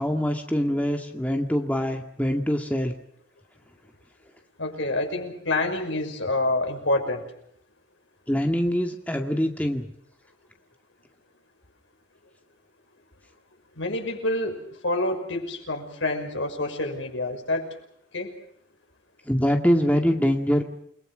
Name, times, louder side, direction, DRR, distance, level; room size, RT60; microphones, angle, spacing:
voice 1, 0.0-3.0 8.3-9.9 19.3-20.6, equal, 10° left, 3 dB, 2.0 m, -24 dB
voice 2, 4.6-7.2 13.8-17.7 18.1-18.3, left 2 dB, 85° left, 4 dB, 5.9 m, -27 dB
29.0 x 21.0 x 6.3 m, 0.68 s
head